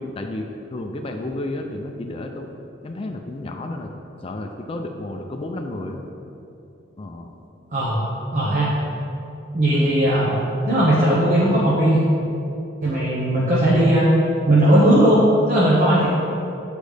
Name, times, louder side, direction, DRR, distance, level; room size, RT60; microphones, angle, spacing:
voice 1, 0.0-2.5 2.8-3.9 4.2-6.0 7.0-7.3 9.7-9.9, left 2 dB, 30° left, 3 dB, 0.4 m, -31 dB
voice 2, 7.7-8.0 8.3-8.7 9.5-10.4 10.6-12.0 12.8-14.1 14.4-16.1, right 1 dB, 45° right, -6 dB, 1.0 m, -17 dB
8.3 x 5.1 x 3.3 m, 2.9 s
head